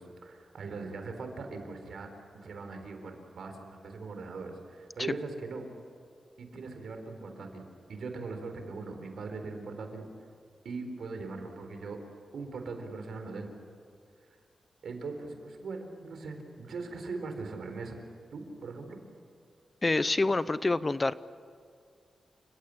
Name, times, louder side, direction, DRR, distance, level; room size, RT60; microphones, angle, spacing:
voice 1, 0.0-2.1 2.3-5.7 6.4-10.1 10.6-12.0 12.3-13.5 14.2-14.4 14.8-18.0 18.3-19.0, right 3 dB, 80° right, 6 dB, 4.0 m, -40 dB
voice 2, 19.8-21.1, left 2 dB, 25° left, 16 dB, 0.7 m, -26 dB
29.5 x 16.5 x 9.8 m, 2.2 s
wide cardioid pair, 105°, 0 cm